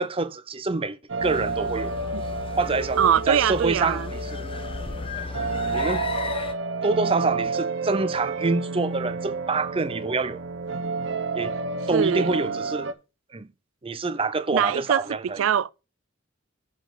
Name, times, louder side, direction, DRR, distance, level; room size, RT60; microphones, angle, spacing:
voice 1, 0.0-1.9 2.6-3.0 3.3-4.5 5.7-6.0 6.8-10.4 11.3-11.5 11.9-12.9 13.3-13.5 13.8-15.4, right 3 dB, 30° right, 0.6 m, -26 dB
sound 1, 1.1-12.9, right 4 dB, 65° right, 0.9 m, -30 dB
sound 2, 1.2-6.5, left 3 dB, 30° left, 0.8 m, -35 dB
voice 2, 3.0-4.1 11.9-12.4 14.5-15.0 15.4-15.7, right 8 dB, 80° right, 0.4 m, -22 dB
7.7 x 5.1 x 6.3 m
head